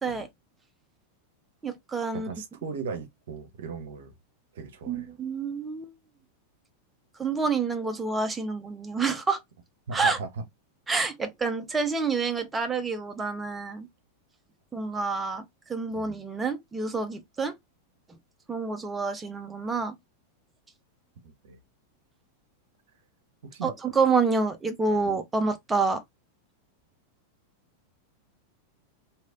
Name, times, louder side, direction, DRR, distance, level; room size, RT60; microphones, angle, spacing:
voice 1, 1.6-2.3 4.9-5.9 7.2-9.4 9.9-10.2 10.9-13.9 14.7-17.5 18.5-19.9 23.6-26.0, right 4 dB, 15° right, 0.7 m, -28 dB
voice 2, 2.1-4.1 4.5-5.1 9.9-10.3 15.9-16.1 21.2-21.6 23.4-23.7 24.9-25.1, right 5 dB, 60° right, 0.9 m, -38 dB
3.2 x 2.8 x 2.5 m
figure-of-eight pair, 90°, 0 cm